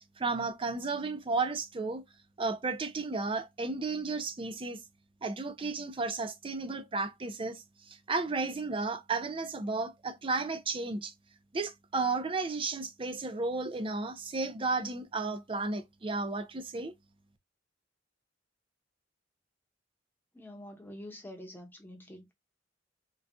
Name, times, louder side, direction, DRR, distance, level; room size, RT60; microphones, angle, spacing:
voice 1, 0.2-2.0 2.4-4.8 5.2-11.1 11.5-16.9, right 3 dB, 30° right, 0.5 m, -33 dB
voice 2, 20.3-22.3, left 1 dB, 10° left, 0.9 m, -46 dB
3.9 x 2.4 x 2.2 m
head